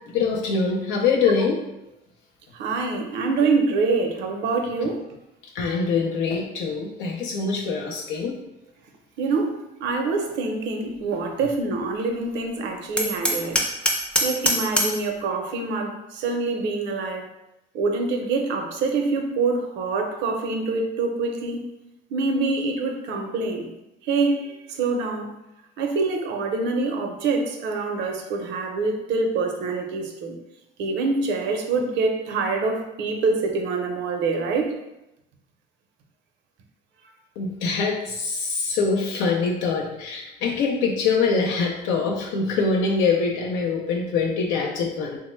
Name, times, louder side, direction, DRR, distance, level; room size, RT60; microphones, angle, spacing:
voice 1, 0.1-1.6 5.5-8.4 37.4-45.2, left 4 dB, 90° left, -1 dB, 0.5 m, -24 dB
voice 2, 2.5-5.1 9.2-13.6 14.2-17.3 17.7-21.7 22.1-23.7 24.0-25.3 25.8-30.4 30.8-34.7, right 3 dB, 70° right, 4 dB, 0.6 m, -25 dB
Hammer, 13.0-15.1, equal, 5° left, 0.5 m, -23 dB
3.2 x 2.1 x 3.0 m, 0.90 s
cardioid pair, 110°, 19 cm